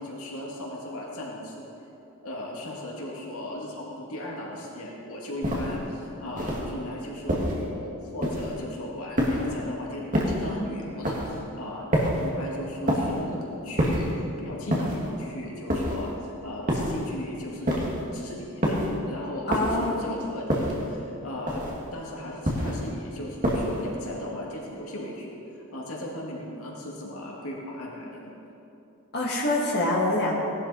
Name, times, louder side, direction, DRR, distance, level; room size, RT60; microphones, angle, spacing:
voice 1, 0.0-1.6 2.2-11.9 12.2-14.1 14.4-17.7 18.1-25.4 25.7-28.3, left 1 dB, 75° left, -3 dB, 2.2 m, -37 dB
sound 1, 5.4-5.8 6.4-6.7 7.3-7.7 8.2-8.6 9.2-9.6 10.1-10.5 11.0-11.4 11.9-12.3 12.9-13.2 13.8-14.2 14.7-15.1 15.7-16.1 16.7-17.1 17.7-18.1 18.6-19.0 19.5-19.9 20.5-20.9 21.5-21.9 22.4-22.9 23.4-23.9, equal, 35° right, 1.9 m, -26 dB
voice 2, 19.5-20.1 29.1-30.3, left 2 dB, 45° left, -4 dB, 2.3 m, -25 dB
17.5 x 11.5 x 4.2 m, 2.8 s
head